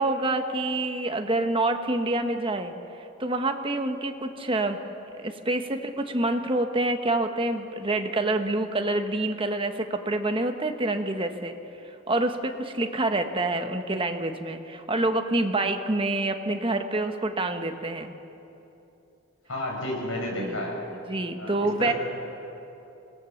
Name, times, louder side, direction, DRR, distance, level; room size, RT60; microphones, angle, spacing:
voice 1, 0.0-2.7 3.2-4.8 5.1-11.5 12.1-18.1 20.4-20.6 21.1-21.9, right 2 dB, 25° right, 6 dB, 1.2 m, -27 dB
voice 2, 19.5-20.8 21.4-21.9, left 1 dB, 75° left, 0 dB, 6.0 m, -31 dB
25.5 x 18.0 x 7.1 m, 2.9 s
head